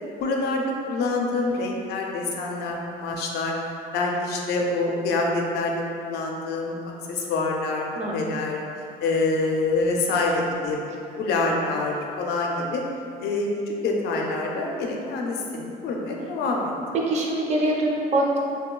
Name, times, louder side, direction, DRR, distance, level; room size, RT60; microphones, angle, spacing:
voice 1, 0.2-3.5 3.9-6.8 7.1-7.9 8.1-8.6 9.0-10.8 11.2-12.8 13.2-13.5 13.8-16.7, left 3 dB, 75° left, 0 dB, 0.5 m, -26 dB
voice 2, 7.9-8.4 17.1-18.4, right 1 dB, 40° right, -2 dB, 0.5 m, -24 dB
2.9 x 2.7 x 2.3 m, 2.6 s
cardioid pair, 110°, 17 cm